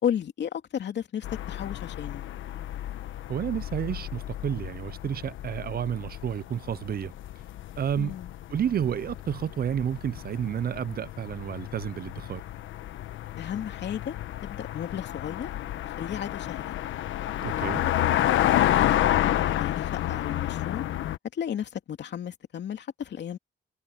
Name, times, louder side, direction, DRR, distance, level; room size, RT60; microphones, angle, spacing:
voice 1, 0.0-2.2 8.0-8.3 13.4-14.2 14.4-15.5 15.8-16.7 17.5-17.9 18.2-18.3 18.6-20.9 21.3-23.4, left 9 dB, 60° left, 2.9 m, -34 dB
sound 1, 1.2-21.2, left 13 dB, 75° left, 1.2 m, -30 dB
voice 2, 3.3-7.1 7.8-8.1 8.5-12.4 17.4-17.8, right 9 dB, 50° right, 0.7 m, -30 dB
cardioid pair, 90°, 20 cm